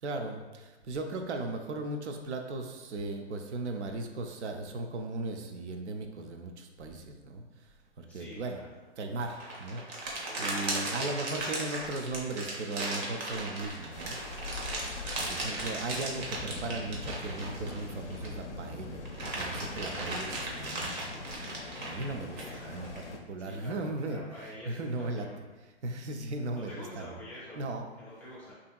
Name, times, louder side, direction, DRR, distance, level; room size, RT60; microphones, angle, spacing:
voice 1, 0.0-8.6 9.0-14.2 15.2-19.0 19.3-21.0 21.8-22.4 22.7-25.3 25.8-27.2 27.6-27.9, right 2 dB, 80° right, 4 dB, 0.5 m, -37 dB
voice 2, 8.0-8.7 10.2-11.1 22.3-22.9 23.4-25.4 26.5-27.6 28.0-28.5, left 1 dB, 5° left, -8 dB, 0.5 m, -47 dB
sound 1, 9.2-18.4 18.8-23.0, right 2 dB, 40° right, 0.7 m, -37 dB
sound 2, 13.9-23.2, left 3 dB, 85° left, 0.5 m, -42 dB
2.7 x 2.7 x 2.3 m, 1.2 s
hypercardioid pair, 125°, 34 cm